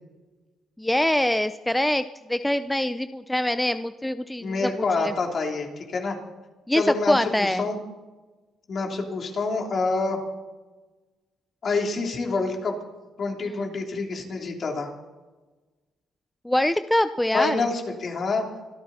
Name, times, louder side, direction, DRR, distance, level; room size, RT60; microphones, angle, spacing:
voice 1, 0.8-5.1 6.7-7.7 16.4-17.7, left 1 dB, 5° left, 11 dB, 0.5 m, -24 dB
voice 2, 4.4-6.2 6.7-7.8 8.7-10.2 11.6-12.8 13.2-14.9 17.3-18.5, left 3 dB, 50° left, 1 dB, 3.3 m, -27 dB
24.5 x 13.0 x 4.2 m, 1.2 s
cardioid pair, 90°, 0 cm